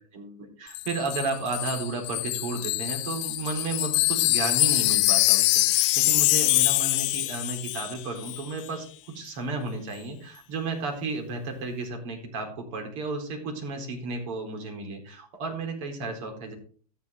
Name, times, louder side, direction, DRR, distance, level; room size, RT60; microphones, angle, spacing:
voice 1, 0.1-8.9 9.1-16.5, right 3 dB, 55° right, 3 dB, 3.9 m, -33 dB
Wind chime, 0.7-8.0 8.2-8.4, left 22 dB, 45° left, 0.5 m, -24 dB
13.5 x 8.5 x 3.6 m, 0.43 s
hypercardioid pair, 95°, 20 cm